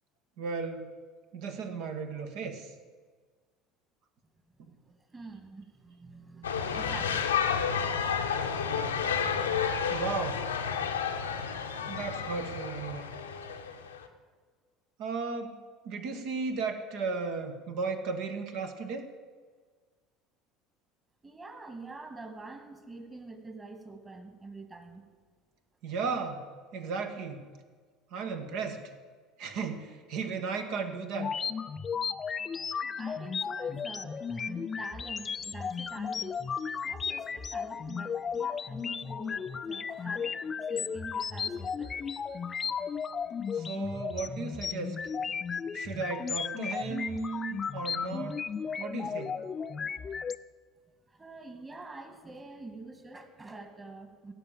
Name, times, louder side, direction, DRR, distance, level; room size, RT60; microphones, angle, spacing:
voice 1, 0.4-0.9 1.3-2.7 4.6-4.7 9.9-10.4 11.9-13.1 15.0-19.1 25.8-26.4 26.7-27.4 28.1-28.9 29.4-31.3 43.5-45.0 45.7-48.4 48.8-49.5, right 4 dB, 60° right, 6 dB, 1.4 m, -35 dB
voice 2, 4.6-7.4 21.2-25.1 32.8-36.5 36.8-42.0 51.1-54.3, right 3 dB, 25° right, 7 dB, 2.2 m, -46 dB
sound 1, 6.4-14.1, left 7 dB, 85° left, 0.9 m, -31 dB
sound 2, 31.1-50.4, left 6 dB, 30° left, 0.5 m, -34 dB
16.5 x 5.8 x 7.3 m, 1.5 s
hypercardioid pair, 65°, 0 cm